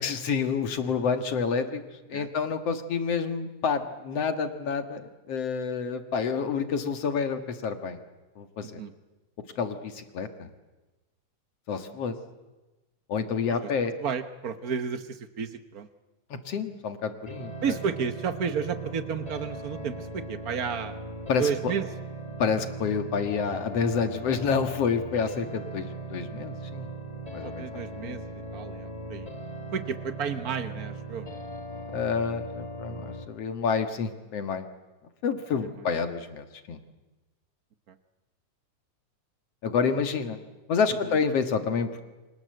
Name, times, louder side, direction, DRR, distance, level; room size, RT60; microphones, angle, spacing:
voice 1, 0.0-1.8 2.1-5.0 5.3-8.0 8.4-8.8 9.6-10.5 11.7-12.1 13.1-13.9 16.5-17.8 21.3-21.5 22.4-26.9 27.3-27.7 28.0-28.2 31.9-34.7 35.2-36.8 39.6-40.4 40.7-42.0, left 5 dB, 60° left, 7 dB, 2.7 m, -28 dB
voice 2, 14.0-15.9 17.6-21.0 21.4-21.9 27.4-29.3 29.7-31.4 35.6-35.7 37.9-38.0 41.1-41.2, right 6 dB, 65° right, 10 dB, 0.9 m, -32 dB
sound 1, 17.3-33.3, right 1 dB, 15° left, 1.9 m, -39 dB
29.5 x 25.0 x 7.9 m, 1.1 s
omnidirectional pair, 3.4 m